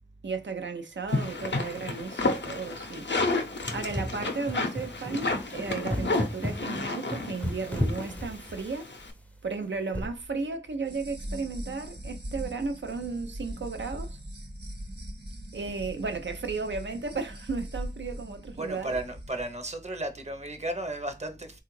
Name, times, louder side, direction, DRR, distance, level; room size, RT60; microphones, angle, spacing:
voice 1, 0.2-3.1 3.7-8.9 9.4-14.2 15.5-19.0, right 4 dB, 90° right, 0.5 m, -34 dB
sound 1, 1.1-9.1, left 3 dB, 80° left, 0.5 m, -31 dB
sound 2, 3.7-9.0 9.9-10.3, equal, 5° left, 0.5 m, -34 dB
sound 3, 10.8-19.5, equal, 60° right, 1.0 m, -41 dB
voice 2, 18.5-21.6, right 1 dB, 35° right, 0.7 m, -34 dB
3.4 x 2.3 x 3.1 m
wide cardioid pair, 45°, 19 cm